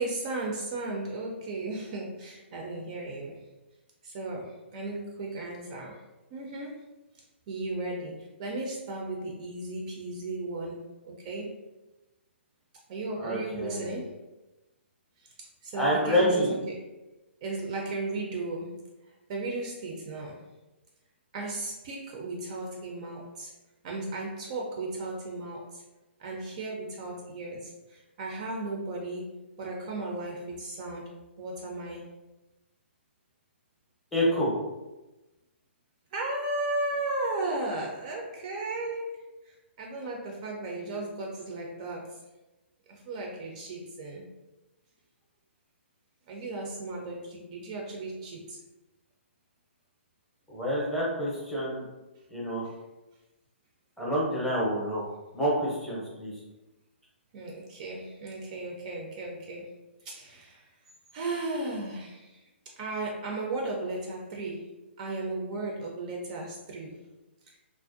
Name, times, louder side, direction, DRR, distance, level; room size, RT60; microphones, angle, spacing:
voice 1, 0.0-3.4 4.0-6.0 6.3-6.8 7.5-11.6 12.9-14.2 15.2-15.3 15.6-16.9 17.4-18.8 19.3-20.4 21.3-23.5 23.8-25.8 26.2-31.1 31.4-32.0 36.1-42.2 42.9-44.2 46.3-48.6 52.6-52.7 57.3-59.7 60.0-60.7 61.1-62.4 62.8-67.0, right 2 dB, 35° right, -1 dB, 0.4 m, -35 dB
voice 2, 13.2-13.9 15.7-16.5 34.1-34.5 50.5-51.8 52.3-52.6 54.0-55.0 55.3-56.3, equal, 5° left, -7 dB, 0.6 m, -27 dB
2.4 x 2.1 x 2.5 m, 1.0 s
hypercardioid pair, 145°, 7 cm